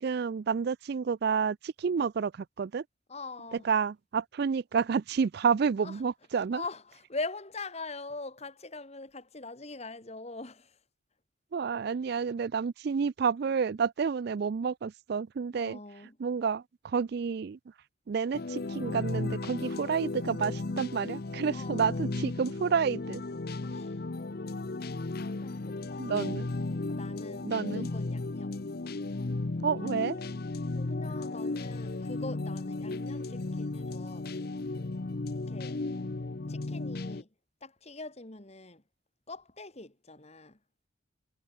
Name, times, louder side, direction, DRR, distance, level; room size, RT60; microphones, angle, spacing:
voice 1, 0.0-2.8 3.6-6.6 11.5-15.8 16.2-17.6 18.1-23.2 26.0-26.5 27.4-27.9 29.6-30.2, right 6 dB, 50° right, 0.3 m, -30 dB
voice 2, 3.1-3.7 5.8-6.0 6.4-10.8 15.5-16.2 21.5-22.1 23.6-24.0 25.4-26.5 26.9-28.6 30.7-34.3 35.5-36.0 36.5-37.3 37.6-38.8 39.3-40.6, left 3 dB, 30° left, 1.8 m, -43 dB
sound 1, 18.3-37.2, left 2 dB, 50° left, 0.7 m, -35 dB
head